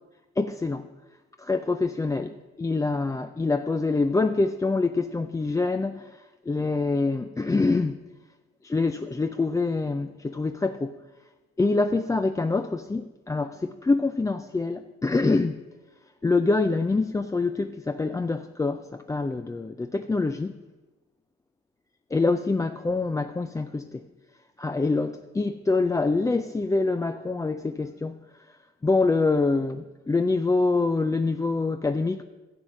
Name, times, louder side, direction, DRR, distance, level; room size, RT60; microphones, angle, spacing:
voice 1, 0.4-0.9 1.4-8.0 8.6-11.0 11.6-15.6 16.2-20.5 22.1-24.0 24.6-28.6 28.8-32.2, left 3 dB, 10° left, 0.3 m, -25 dB
11.0 x 7.8 x 6.3 m
cardioid pair, 90°, 30 cm